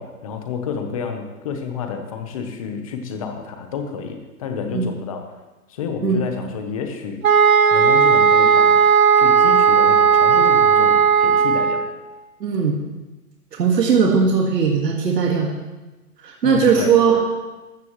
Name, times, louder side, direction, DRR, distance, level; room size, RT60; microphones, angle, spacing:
voice 1, 0.0-5.4 5.7-7.2 7.7-8.9 9.2-11.9 16.4-17.0, left 6 dB, 20° left, 5 dB, 0.9 m, -30 dB
sound 1, 7.2-11.9, right 6 dB, 55° right, 1.0 m, -15 dB
voice 2, 12.4-12.8 13.6-15.5 16.2-17.2, right 6 dB, 90° right, 0 dB, 1.9 m, -18 dB
14.5 x 13.5 x 3.1 m, 1.1 s
hypercardioid pair, 170°, 48 cm